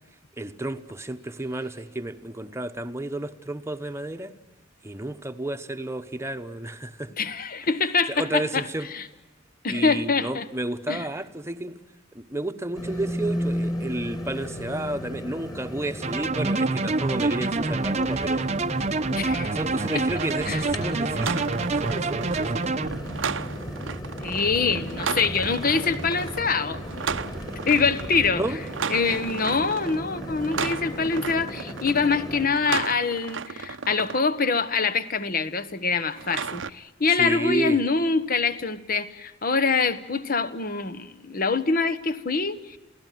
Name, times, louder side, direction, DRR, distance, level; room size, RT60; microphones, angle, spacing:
voice 1, 0.4-4.3 4.8-7.1 8.1-8.9 9.7-11.8 12.1-18.5 19.4-21.5 21.7-22.7 28.3-28.6 37.1-37.8, right 1 dB, 15° right, 1.1 m, -31 dB
voice 2, 7.2-8.6 8.9-9.0 9.6-10.4 10.9-11.1 19.1-19.5 19.9-20.0 20.5-20.6 24.2-26.8 27.7-28.4 28.9-42.8, left 4 dB, 45° left, 1.2 m, -25 dB
sound 1, 12.7-32.5, equal, 20° left, 3.1 m, -35 dB
sound 2, 16.0-22.9, right 3 dB, 35° right, 0.8 m, -26 dB
sound 3, 19.8-34.2 36.1-36.7, right 6 dB, 70° right, 0.8 m, -34 dB
28.0 x 17.0 x 9.3 m
head